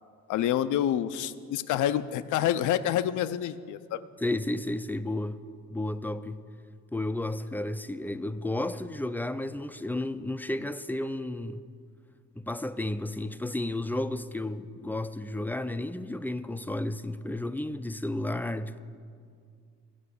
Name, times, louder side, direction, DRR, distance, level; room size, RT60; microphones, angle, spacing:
voice 1, 0.3-4.0, left 11 dB, 80° left, 0.5 m, -27 dB
voice 2, 4.2-5.4 5.7-6.4 6.9-11.6 12.4-18.8, left 1 dB, 5° left, 0.4 m, -32 dB
15.0 x 5.8 x 8.3 m
cardioid pair, 90°, 30 cm